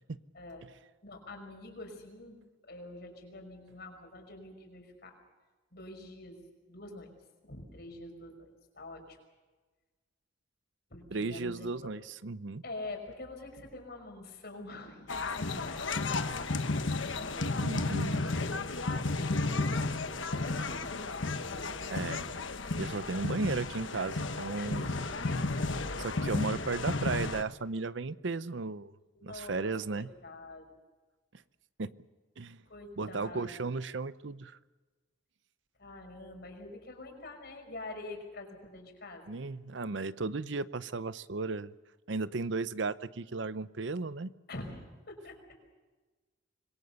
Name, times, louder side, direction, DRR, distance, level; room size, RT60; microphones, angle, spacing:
voice 1, 0.3-0.7 1.0-2.4 2.6-5.2 5.7-7.1 7.4-9.2 10.9-11.7 12.6-22.4 24.6-26.1 29.1-30.7 32.7-33.7 35.8-39.4 44.5-45.6, left 2 dB, 55° left, 3 dB, 5.5 m, -46 dB
voice 2, 11.1-12.6 17.6-18.2 21.9-22.2 22.8-24.8 26.0-28.9 29.2-30.1 31.8-31.9 32.4-32.6 33.0-34.6 39.3-41.7 42.1-44.3, right 3 dB, 65° right, 16 dB, 0.7 m, -35 dB
sound 1, 15.1-27.4, left 3 dB, 75° left, 1.4 m, -33 dB
26.0 x 21.5 x 6.9 m, 1.3 s
head